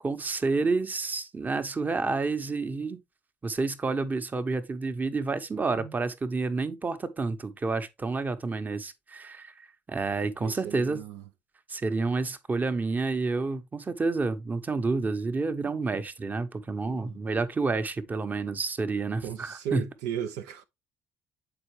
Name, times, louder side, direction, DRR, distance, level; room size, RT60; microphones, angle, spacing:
voice 1, 0.0-3.0 3.4-9.5 9.9-11.0 11.7-19.8, right 3 dB, 25° right, 1.0 m, -29 dB
voice 2, 10.4-11.2 16.9-17.2 19.2-20.6, right 9 dB, 70° right, 0.5 m, -36 dB
7.8 x 4.6 x 3.1 m
hypercardioid pair, 55°, 7 cm